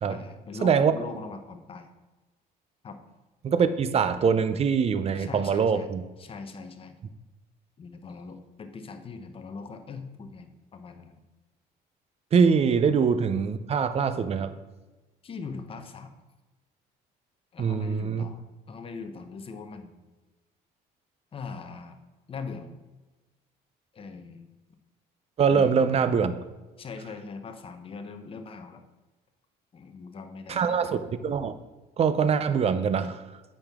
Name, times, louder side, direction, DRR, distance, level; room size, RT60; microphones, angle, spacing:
voice 1, 0.1-1.9 2.8-3.0 5.2-5.9 6.2-7.0 7.8-11.2 15.2-16.1 17.5-20.0 21.3-22.0 22.3-22.7 23.9-24.5 25.5-25.9 26.8-28.8 29.7-30.9, left 4 dB, 35° left, 7 dB, 0.8 m, -41 dB
voice 2, 0.6-0.9 3.4-6.0 12.3-14.5 17.6-18.3 25.4-26.3 30.5-31.5 32.0-33.2, right 6 dB, 35° right, 12 dB, 0.5 m, -23 dB
8.8 x 5.5 x 3.5 m, 1.2 s
cardioid pair, 110°, 17 cm